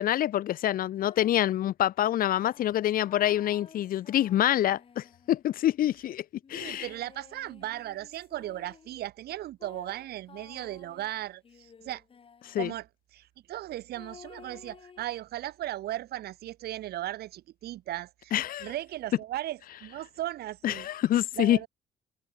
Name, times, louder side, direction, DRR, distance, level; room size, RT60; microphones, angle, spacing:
voice 1, 0.0-6.2 6.5-6.9 12.4-12.7 18.3-18.7 20.6-21.6, left 12 dB, 65° left, 0.8 m, -26 dB
sound 1, 1.0-1.6 2.3-5.6 6.4-9.0 9.6-12.7 13.9-15.1, left 6 dB, 35° left, 4.3 m, -53 dB
voice 2, 6.5-12.0 12.6-12.9 13.1-18.3 18.6-20.9 21.4-21.7, right 14 dB, 85° right, 2.5 m, -37 dB
cardioid pair, 140°, 16 cm